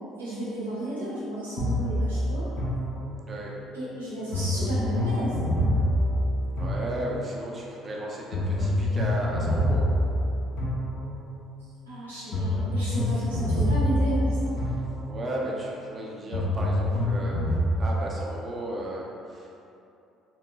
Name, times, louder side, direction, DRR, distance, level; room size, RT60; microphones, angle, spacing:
voice 1, 0.2-2.5 3.7-5.4 11.9-14.5, right 1 dB, 85° right, -11 dB, 1.0 m, -33 dB
sound 1, 1.6-3.5 4.3-7.4 8.3-11.4 12.3-15.4 16.3-17.7, equal, 60° left, 0.8 m, -26 dB
voice 2, 3.2-3.5 6.5-9.9 15.1-17.4 17.8-19.6, right 1 dB, 35° right, -3 dB, 0.7 m, -34 dB
3.7 x 3.3 x 2.2 m, 2.7 s
figure-of-eight pair, 50°, 0 cm